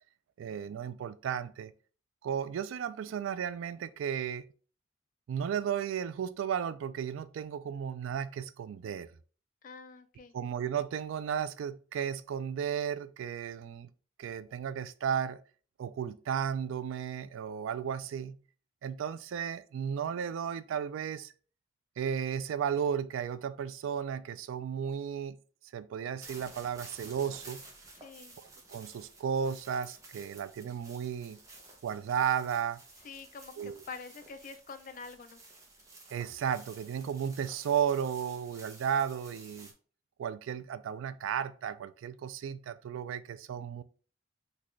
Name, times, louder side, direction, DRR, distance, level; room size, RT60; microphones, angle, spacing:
voice 1, 0.4-1.7 2.2-4.5 5.3-9.1 10.3-13.9 14.2-15.4 15.8-18.4 18.8-21.3 22.0-25.4 25.7-27.6 28.7-31.4 31.8-32.8 33.6-33.8 36.1-39.7 40.2-43.8, right 8 dB, 85° right, 0.3 m, -34 dB
voice 2, 9.6-10.3 27.9-28.4 33.0-35.4, left 5 dB, 45° left, 0.3 m, -46 dB
sound 1, 26.2-39.7, right 2 dB, 15° right, 0.7 m, -53 dB
4.0 x 2.3 x 3.1 m
head